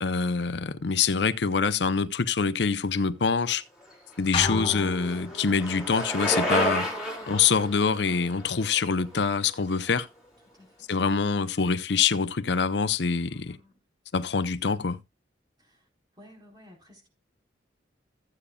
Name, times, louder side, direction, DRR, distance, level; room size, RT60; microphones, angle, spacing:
voice 1, 0.0-3.6 4.2-6.9 7.3-10.1 10.9-13.6 14.1-15.0, left 5 dB, 65° left, 0.6 m, -25 dB
Bicycle, 3.9-9.9, equal, 5° right, 4.3 m, -32 dB
sound 1, 4.3-5.8, left 3 dB, 30° left, 0.7 m, -32 dB
voice 2, 6.9-7.6 10.5-10.8 13.3-13.8 15.6-15.9 16.2-17.1, left 1 dB, 25° right, 4.2 m, -55 dB
15.0 x 8.3 x 2.3 m
head